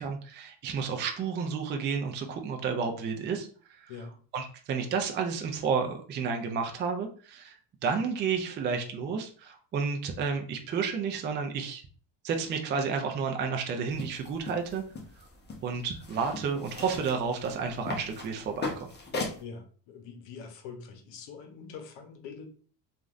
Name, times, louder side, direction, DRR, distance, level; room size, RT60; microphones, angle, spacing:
voice 1, 0.0-3.9 4.3-7.6 7.8-11.8 12.2-14.8 15.6-18.9, right 5 dB, 25° right, 4 dB, 0.3 m, -31 dB
sound 1, 13.9-19.4, left 3 dB, 25° left, 0.7 m, -39 dB
voice 2, 19.4-22.4, left 5 dB, 75° left, 5 dB, 0.9 m, -44 dB
3.0 x 2.5 x 2.4 m, 0.41 s
cardioid pair, 120°, 44 cm